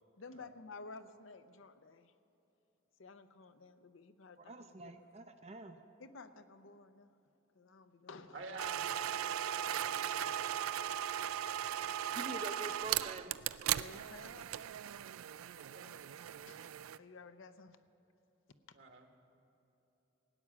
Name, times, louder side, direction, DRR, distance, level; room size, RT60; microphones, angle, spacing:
voice 1, 0.2-2.1 3.0-4.9 6.0-7.1 7.5-8.5 12.0-12.3 13.7-14.5 15.2-15.3 16.5-17.8 18.7-18.8, left 4 dB, 70° left, 11 dB, 0.6 m, -54 dB
voice 2, 4.5-5.8 12.1-13.4, right 2 dB, 30° right, 6 dB, 0.5 m, -45 dB
voice 3, 8.3-10.4 15.4-16.0 18.7-19.1, right 3 dB, 70° right, 3 dB, 1.5 m, -51 dB
sound 1, 8.6-17.0, right 11 dB, 90° right, 0.4 m, -38 dB
17.0 x 9.6 x 7.3 m, 2.9 s
head